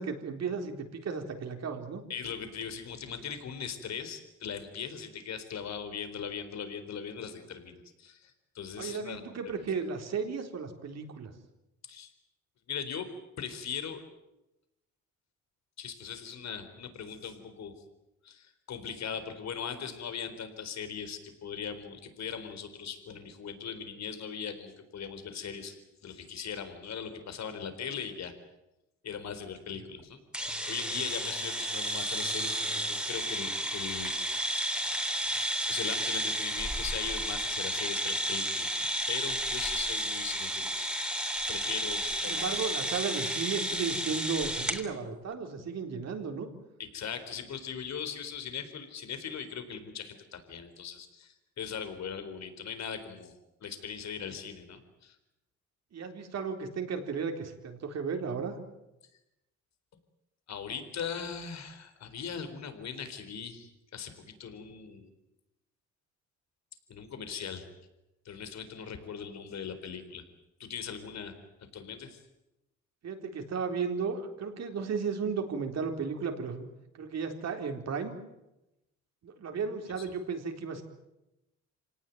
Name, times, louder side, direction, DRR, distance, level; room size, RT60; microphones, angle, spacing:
voice 1, 0.0-2.0 8.8-11.3 42.2-46.5 55.9-58.6 73.0-76.7 76.9-78.2 79.2-80.8, right 5 dB, 60° right, 4 dB, 4.0 m, -34 dB
voice 2, 2.1-9.2 11.8-12.1 12.7-13.1 13.4-14.0 15.8-17.7 18.2-28.3 29.0-34.2 34.5-35.0 35.3-40.7 41.5-42.6 46.8-53.3 53.6-55.2 60.5-65.1 66.9-67.7 68.2-70.2 70.6-71.3 71.6-72.2 80.0-80.1, left 7 dB, 60° left, 9 dB, 4.1 m, -40 dB
sound 1, 30.3-44.8, right 1 dB, 5° right, 3.5 m, -32 dB
26.5 x 18.5 x 9.3 m, 0.93 s
cardioid pair, 90°, 30 cm